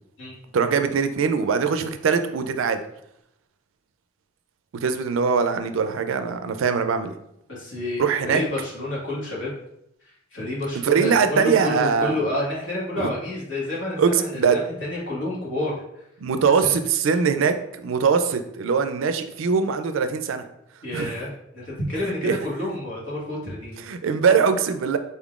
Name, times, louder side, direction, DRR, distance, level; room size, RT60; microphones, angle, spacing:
voice 1, 0.5-2.8 4.8-7.1 8.0-8.4 10.8-12.2 13.0-13.1 14.0-14.6 16.2-20.4 20.9-21.1 22.2-22.4 23.8-25.0, right 5 dB, 85° right, 9 dB, 0.4 m, -22 dB
voice 2, 7.5-9.5 10.3-15.7 16.6-16.7 20.8-23.8, left 1 dB, 65° left, -6 dB, 1.5 m, -29 dB
4.1 x 3.6 x 2.4 m, 0.77 s
head